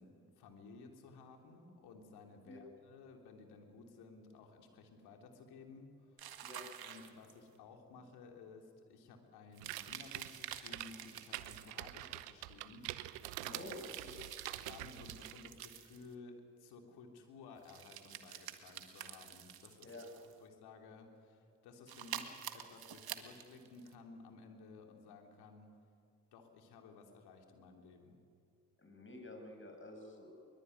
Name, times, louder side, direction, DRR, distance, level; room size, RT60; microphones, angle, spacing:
voice 1, 0.0-6.3 6.8-13.6 14.6-19.9 20.4-25.7 26.3-28.2, left 4 dB, 75° left, 3 dB, 3.3 m, -56 dB
sound 1, 6.2-7.6 9.5-11.7 13.1-16.1 17.6-20.4 21.9-23.9, right 10 dB, 65° right, 1.9 m, -49 dB
sound 2, 9.6-15.6, right 16 dB, 85° right, 0.9 m, -46 dB
voice 2, 13.5-14.3 19.8-20.1 20.3-20.4 28.8-30.3, left 2 dB, 30° left, 4 dB, 7.5 m, -50 dB
22.5 x 22.5 x 9.7 m, 2.4 s
hypercardioid pair, 45°, 39 cm